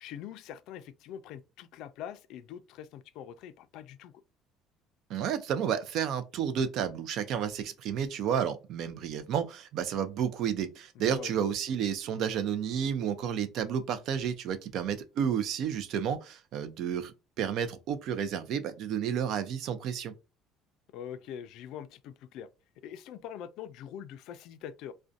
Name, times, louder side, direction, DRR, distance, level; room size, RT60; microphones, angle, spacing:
voice 1, 0.0-4.1 10.9-11.5 20.9-22.5 22.8-24.9, left 9 dB, 65° left, 0.3 m, -44 dB
voice 2, 5.1-20.1, right 8 dB, 55° right, 0.4 m, -31 dB
2.4 x 2.1 x 2.5 m
cardioid pair, 140°, 0 cm